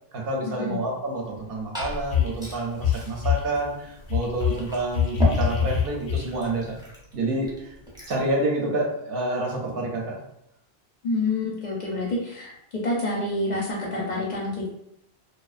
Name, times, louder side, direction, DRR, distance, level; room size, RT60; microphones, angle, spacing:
voice 1, 0.1-6.8 7.1-7.8 8.1-10.2, right 2 dB, 65° right, 0 dB, 0.7 m, -28 dB
Liquid, 1.2-8.3, equal, 5° right, 0.4 m, -35 dB
sound 1, 1.8-2.5 2.8-3.5 4.1-6.6, left 8 dB, 90° left, 0.9 m, -25 dB
voice 2, 11.0-12.5 12.8-14.7, left 2 dB, 55° left, -3 dB, 0.5 m, -27 dB
2.5 x 2.1 x 2.3 m, 0.77 s
omnidirectional pair, 1.1 m